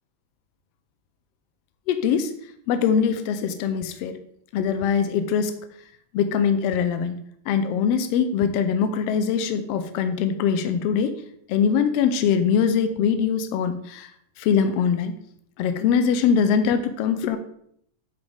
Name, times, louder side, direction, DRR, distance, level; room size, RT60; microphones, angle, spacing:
voice 1, 1.9-2.3 2.7-4.2 4.5-5.6 6.1-7.2 7.5-11.1 11.5-14.1 14.4-15.1 15.6-17.4, left 7 dB, 85° left, 9 dB, 1.4 m, -22 dB
7.9 x 4.9 x 3.5 m, 0.68 s
omnidirectional pair, 3.3 m